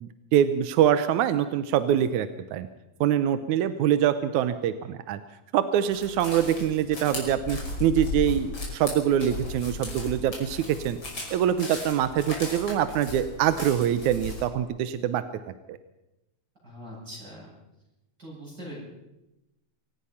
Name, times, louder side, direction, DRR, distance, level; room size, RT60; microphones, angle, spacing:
voice 1, 0.0-2.7 3.0-5.2 5.5-11.0 11.3-15.2 15.7-15.8, right 10 dB, 75° right, 11 dB, 2.2 m, -24 dB
sound 1, 5.9-14.4, left 2 dB, 35° left, 6.3 m, -36 dB
voice 2, 16.6-17.5 18.2-18.8, equal, 30° right, -7 dB, 8.7 m, -42 dB
25.5 x 18.5 x 5.8 m, 0.95 s
omnidirectional pair, 3.5 m